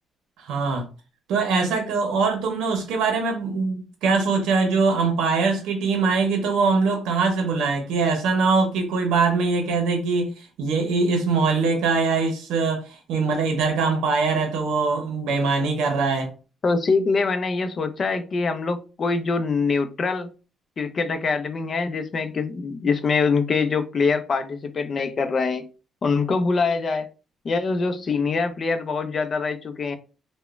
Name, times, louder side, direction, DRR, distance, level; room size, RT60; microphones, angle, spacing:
voice 1, 0.4-0.9 1.3-16.3, right 4 dB, 90° right, 0.6 m, -22 dB
voice 2, 16.6-20.3 20.8-25.7 26.0-27.1 27.4-30.0, left 4 dB, 45° left, 0.4 m, -24 dB
2.9 x 2.1 x 2.3 m
cardioid pair, 90°, 0 cm